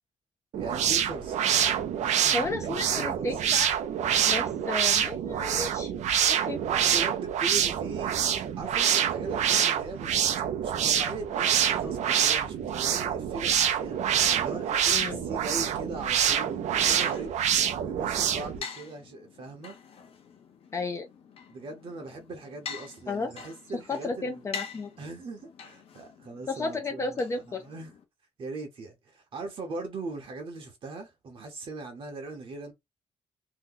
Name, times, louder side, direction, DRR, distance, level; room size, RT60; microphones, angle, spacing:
sound 1, 0.5-18.6, right 9 dB, 70° right, 0.5 m, -26 dB
voice 1, 0.6-1.4 2.0-3.3 6.6-8.3 8.6-10.2 10.6-14.0 14.4-17.4 17.8-19.8 21.5-24.4 25.0-27.9 28.4-32.7, right 3 dB, 45° right, 0.8 m, -40 dB
voice 2, 2.3-3.7 4.2-5.9 6.3-6.6 14.9-15.2 20.7-21.1 23.1-23.3 23.7-24.9 26.5-27.6, left 3 dB, 25° left, 0.4 m, -33 dB
sound 2, 16.4-28.0, left 6 dB, 50° left, 0.7 m, -46 dB
2.8 x 2.2 x 3.7 m
cardioid pair, 165°, 12 cm